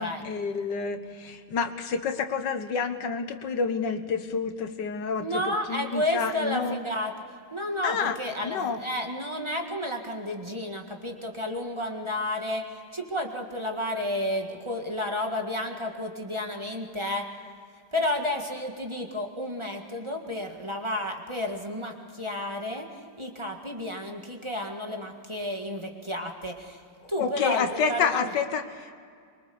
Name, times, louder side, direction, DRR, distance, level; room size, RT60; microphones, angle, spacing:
voice 1, 0.0-6.8 7.8-8.2 8.4-8.8 27.0-28.9, left 5 dB, 85° left, 8 dB, 1.9 m, -29 dB
voice 2, 5.2-7.1 7.5-17.3 17.9-22.9 23.2-26.8 27.1-28.3, left 1 dB, 15° right, 2 dB, 1.8 m, -31 dB
24.5 x 23.0 x 7.0 m, 2.2 s
omnidirectional pair, 1.9 m